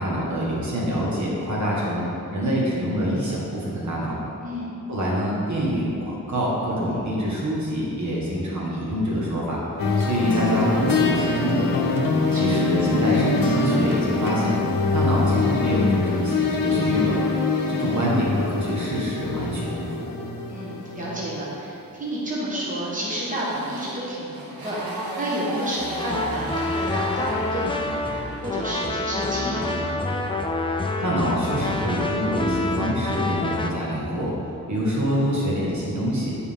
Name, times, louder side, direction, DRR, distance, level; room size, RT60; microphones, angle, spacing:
voice 1, 0.0-2.0 2.3-4.1 4.9-9.6 10.0-11.7 12.3-14.6 14.9-17.1 17.7-20.0 30.7-34.3 34.7-36.4, equal, 55° right, -5 dB, 1.4 m, -25 dB
voice 2, 4.4-4.8 12.0-12.7 20.5-30.0, right 1 dB, 20° right, -7 dB, 1.3 m, -30 dB
sound 1, 9.8-21.3, left 3 dB, 70° left, 0.8 m, -24 dB
Motorcycle, 22.7-28.8, right 1 dB, 85° right, 1.2 m, -36 dB
sound 2, 25.8-33.7, left 2 dB, 15° left, 0.3 m, -27 dB
9.1 x 4.7 x 3.5 m, 2.8 s
wide cardioid pair, 135°, 35 cm